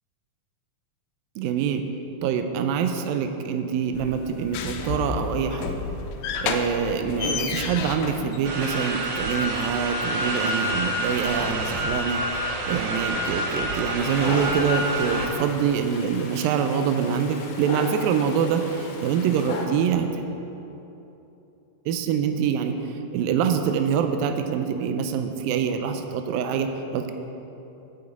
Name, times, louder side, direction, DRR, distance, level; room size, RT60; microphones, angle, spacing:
voice 1, 1.4-1.9 2.2-5.8 6.4-20.2 21.9-27.1, right 7 dB, 85° right, 6 dB, 2.3 m, -25 dB
sound 1, 3.9-9.0, left 5 dB, 90° left, 2.7 m, -31 dB
sound 2, 8.4-15.3, right 1 dB, 65° right, 1.1 m, -27 dB
Dog, 14.0-19.7, left 3 dB, 70° left, 2.3 m, -36 dB
8.9 x 8.5 x 8.1 m, 3.0 s
omnidirectional pair, 4.2 m